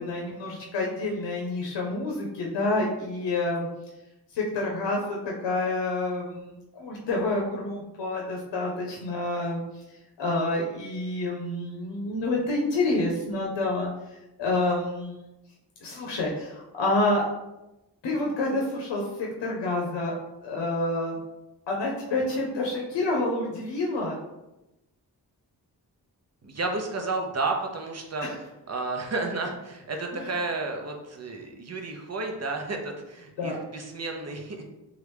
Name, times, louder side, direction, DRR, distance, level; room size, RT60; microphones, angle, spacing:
voice 1, 0.0-3.7 4.3-9.6 10.2-13.9 14.4-15.2 15.8-17.3 18.0-20.2 20.4-21.2 21.7-24.2 28.2-28.4 30.1-30.3 33.4-33.6, left 2 dB, 85° left, -2 dB, 0.7 m, -28 dB
voice 2, 26.4-28.3 28.7-34.6, right 3 dB, 40° right, 3 dB, 0.7 m, -32 dB
3.0 x 2.4 x 3.3 m, 0.96 s
cardioid pair, 55°, 41 cm